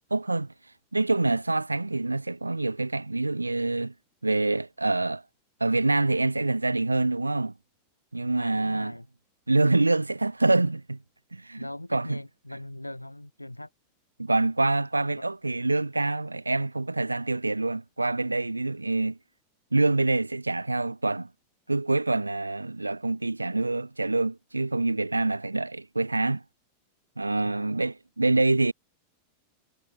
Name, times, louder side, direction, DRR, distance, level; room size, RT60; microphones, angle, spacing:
voice 1, 0.1-0.5 0.9-3.9 4.2-5.2 5.6-7.5 8.1-9.0 9.5-11.0 11.3-12.2 14.2-19.2 19.7-21.3 21.7-26.4 27.2-28.7, right 2 dB, 85° right, 0.4 m, -26 dB
voice 2, 8.3-9.1 11.6-13.7 15.2-15.3 27.4-27.7, left 1 dB, 85° left, 2.3 m, -40 dB
figure-of-eight pair, 90°, 0 cm